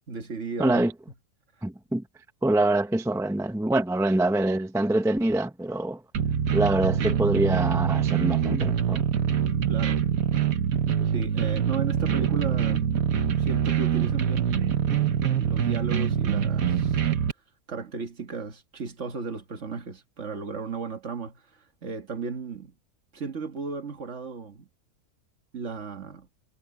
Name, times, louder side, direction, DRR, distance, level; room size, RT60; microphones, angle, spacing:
voice 1, 0.1-0.8 9.7-10.0 11.1-13.1 13.4-14.7 15.2-17.0 17.7-22.7 23.1-24.7 25.5-26.3, right 5 dB, 55° right, 1.9 m, -35 dB
voice 2, 0.6-0.9 1.6-2.0 2.4-6.0 6.5-9.0, right 1 dB, 5° right, 0.5 m, -25 dB
sound 1, 6.1-17.3, right 9 dB, 85° right, 1.7 m, -24 dB
omnidirectional pair, 1.5 m